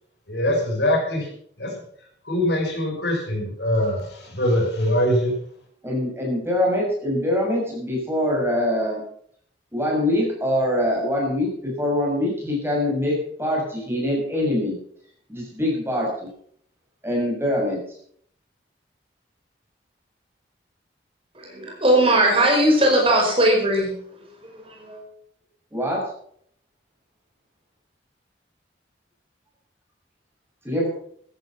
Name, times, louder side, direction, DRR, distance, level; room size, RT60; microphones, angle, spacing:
voice 1, 0.3-1.3 1.6-1.7 2.3-5.3, left 1 dB, 70° left, 1 dB, 5.6 m, -22 dB
voice 2, 5.8-9.0 9.7-14.8 15.3-16.3 17.0-17.8 25.7-26.0 30.6-30.9, left 1 dB, 15° right, -2 dB, 6.4 m, -24 dB
voice 3, 21.3-24.0 24.4-25.0, right 1 dB, 30° right, 0 dB, 4.9 m, -19 dB
14.5 x 12.0 x 5.8 m, 0.63 s
head